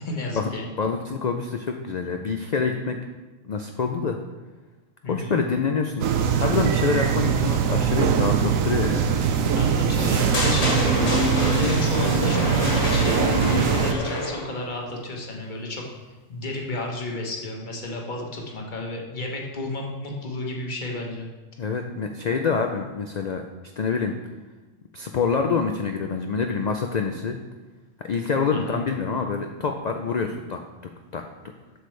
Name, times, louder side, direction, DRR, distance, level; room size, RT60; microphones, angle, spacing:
voice 1, 0.0-0.6 5.0-5.4 9.5-15.8 16.3-21.3 28.5-28.8, left 2 dB, 40° left, 0 dB, 1.2 m, -32 dB
voice 2, 0.8-3.0 3.4-4.2 5.1-6.1 6.4-9.1 21.6-23.4 23.8-24.1 24.9-27.4 28.1-30.6 31.1-31.2, left 5 dB, 75° left, 4 dB, 0.4 m, -26 dB
sound 1, 6.0-13.9, right 7 dB, 90° right, 1.1 m, -22 dB
sound 2, 10.3-14.6, left 2 dB, 55° left, 2.2 m, -26 dB
7.9 x 6.9 x 3.2 m, 1.2 s
omnidirectional pair, 1.3 m